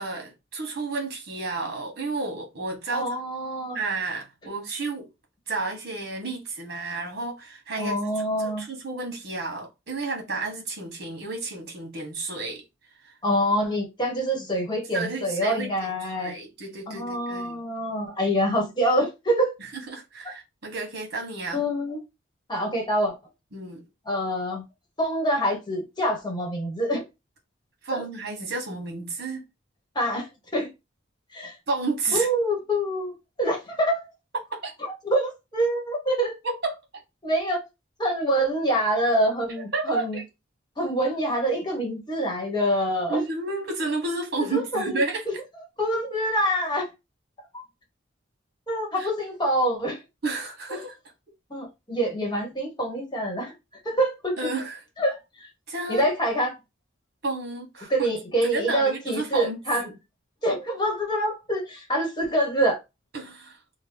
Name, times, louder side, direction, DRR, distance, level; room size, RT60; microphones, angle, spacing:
voice 1, 0.0-3.1 3.7-5.1 5.5-8.0 8.4-12.6 13.0-13.1 14.4-14.6 14.9-17.5 19.7-21.6 23.5-23.8 27.8-29.4 31.7-32.3 34.5-34.7 36.4-36.8 39.7-40.2 43.1-45.2 49.0-49.1 50.2-50.9 54.4-54.8 55.7-56.1 57.2-58.1 58.4-59.9 63.1-63.6, right 3 dB, 55° right, 1.4 m, -31 dB
voice 2, 2.9-3.8 7.8-8.6 13.2-16.3 16.9-19.5 21.5-22.0 22.5-23.2 24.0-24.7 25.0-27.0 27.9-28.0 29.9-30.7 31.3-31.5 32.1-33.1 33.4-34.1 34.8-36.3 37.2-37.6 38.0-40.2 40.8-43.2 44.5-45.0 45.3-45.4 45.8-46.8 47.5-47.6 48.7-50.0 51.5-53.5 53.8-54.3 55.0-55.5 55.9-56.6 57.9-59.8 60.4-62.8, right 1 dB, 20° left, 1.2 m, -26 dB
3.0 x 2.2 x 3.5 m
head